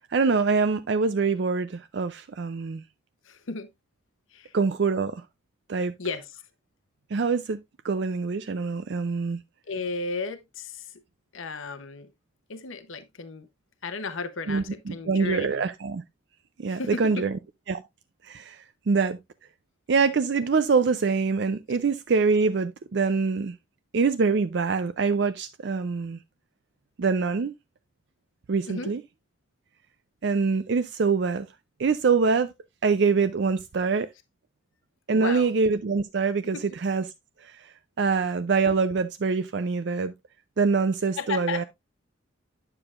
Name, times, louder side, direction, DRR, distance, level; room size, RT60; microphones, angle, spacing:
voice 1, 0.1-2.8 4.5-5.2 5.7-5.9 7.1-7.6 7.8-9.4 14.5-16.0 16.6-17.3 17.7-17.8 18.2-19.2 19.9-23.5 23.9-26.2 27.0-27.5 28.5-29.0 30.2-31.5 31.8-32.5 32.8-34.1 35.1-36.6 36.8-37.0 37.4-40.1 40.6-41.6, right 4 dB, 60° right, 0.4 m, -24 dB
voice 2, 3.2-3.7 4.3-4.6 6.0-6.4 9.6-11.0 11.3-12.1 12.5-13.5 13.8-15.7 16.7-17.2 28.6-28.9 35.1-35.5 36.4-36.7 41.2-41.6, left 4 dB, 80° left, 0.8 m, -34 dB
9.9 x 6.8 x 2.4 m
head